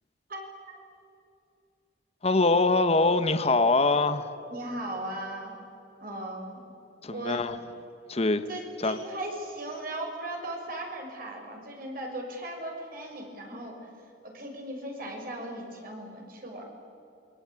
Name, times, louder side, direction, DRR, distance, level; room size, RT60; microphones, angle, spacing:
voice 1, 2.2-4.3 7.0-7.6 8.1-8.4 8.8-9.0, left 3 dB, 35° left, 10 dB, 1.2 m, -23 dB
voice 2, 4.5-5.5 6.0-6.6 7.1-7.4 8.5-13.8 14.2-16.7, right 1 dB, 55° right, 1 dB, 6.2 m, -37 dB
28.0 x 22.5 x 9.0 m, 2.7 s
head